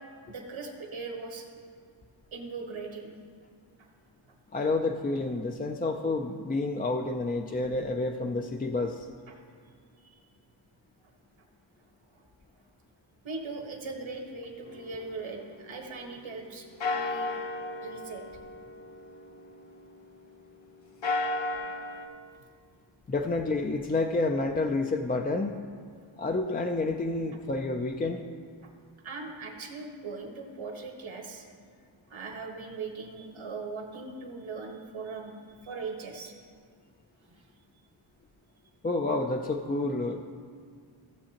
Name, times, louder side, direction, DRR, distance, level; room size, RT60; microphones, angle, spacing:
voice 1, 0.3-1.5 2.3-3.1 3.8-3.9 9.3-9.4 10.0-10.2 12.1-12.2 13.2-16.7 16.9-17.4 17.8-18.2 21.2-21.5 28.6-28.7 29.0-31.5 32.1-36.4 37.3-37.5, right 4 dB, 75° right, 1 dB, 1.5 m, -40 dB
voice 2, 4.5-9.1 23.1-25.6 26.2-28.2 38.8-40.3, left 2 dB, 20° left, 3 dB, 0.3 m, -29 dB
sound 1, 14.7-16.4 16.8-20.3 20.8-22.1, left 2 dB, 65° left, 0.9 m, -35 dB
15.5 x 7.4 x 2.9 m, 2.2 s
wide cardioid pair, 125°, 48 cm